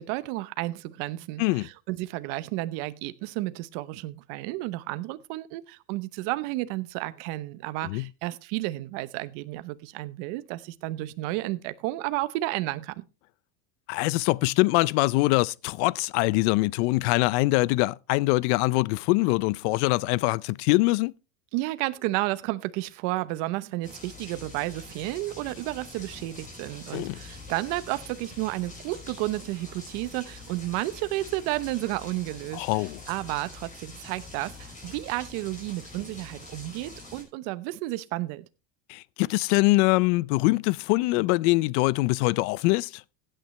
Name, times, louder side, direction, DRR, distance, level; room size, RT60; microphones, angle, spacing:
voice 1, 0.0-13.0 21.5-38.5, right 18 dB, 65° right, 0.9 m, -32 dB
voice 2, 13.9-21.1 26.9-27.2 32.5-33.0 38.9-43.0, left 22 dB, 65° left, 0.5 m, -23 dB
sound 1, 23.8-37.2, left 3 dB, 20° left, 5.3 m, -45 dB
16.0 x 9.0 x 3.2 m
supercardioid pair, 145°, 38 cm